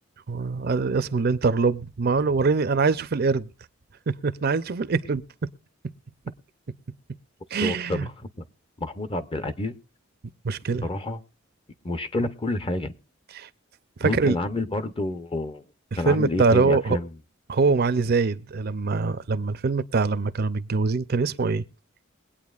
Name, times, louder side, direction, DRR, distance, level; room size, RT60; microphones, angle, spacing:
voice 1, 0.3-3.5 4.1-5.2 7.5-8.1 10.4-10.9 13.3-13.5 14.0-14.4 15.9-17.0 17.5-21.6, right 4 dB, 50° right, 0.5 m, -23 dB
voice 2, 7.6-8.4 8.8-9.8 10.8-11.2 11.8-12.9 14.0-15.6 16.0-17.1, left 1 dB, 25° left, 0.7 m, -29 dB
22.5 x 8.7 x 2.4 m
head